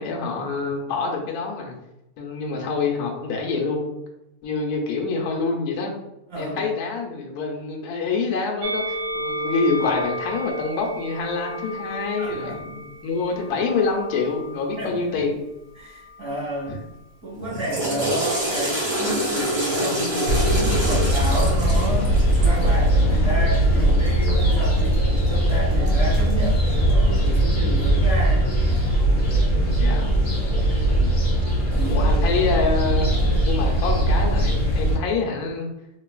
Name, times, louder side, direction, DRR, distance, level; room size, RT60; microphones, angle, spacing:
voice 1, 0.0-1.7 2.2-3.9 4.4-5.9 6.4-15.4 16.7-16.8 29.8-30.1 30.8-31.2 31.9-33.1 33.4-35.7, left 4 dB, 70° left, 0 dB, 1.0 m, -26 dB
voice 2, 6.3-6.6 12.2-12.8 14.8-15.2 15.8-16.8 17.2-22.1 22.4-25.0 25.3-28.5 31.7-32.1, right 1 dB, 25° right, -5 dB, 0.7 m, -31 dB
Musical instrument, 8.6-15.0 15.9-16.9, equal, 70° right, 1.1 m, -33 dB
Water / Toilet flush, 17.4-22.7, right 1 dB, 85° right, 1.9 m, -26 dB
sound 1, 20.2-35.0, right 1 dB, 35° left, 0.9 m, -20 dB
3.0 x 2.7 x 2.3 m, 0.88 s
omnidirectional pair, 1.7 m